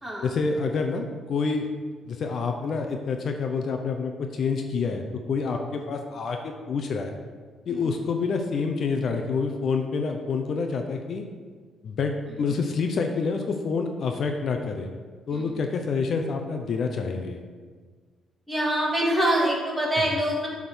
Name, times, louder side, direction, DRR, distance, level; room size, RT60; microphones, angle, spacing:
voice 1, 0.2-1.7 2.1-7.1 7.7-11.2 11.8-14.9 15.3-17.4, left 4 dB, 60° left, 4 dB, 0.6 m, -27 dB
voice 2, 18.5-20.5, right 1 dB, 10° right, -4 dB, 2.2 m, -25 dB
7.5 x 3.7 x 6.2 m, 1.5 s
cardioid pair, 90°, 0 cm